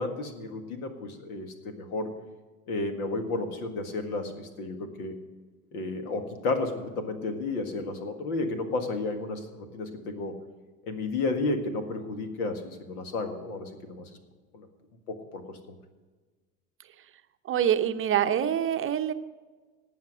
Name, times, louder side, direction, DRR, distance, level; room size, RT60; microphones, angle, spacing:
voice 1, 0.0-2.1 2.7-5.2 5.7-10.4 10.9-14.0 14.5-14.7 15.1-15.8, left 3 dB, 70° left, 7 dB, 1.9 m, -32 dB
voice 2, 17.4-19.1, right 9 dB, 30° right, 10 dB, 0.7 m, -25 dB
18.0 x 5.9 x 6.2 m, 1.3 s
hypercardioid pair, 75°, 46 cm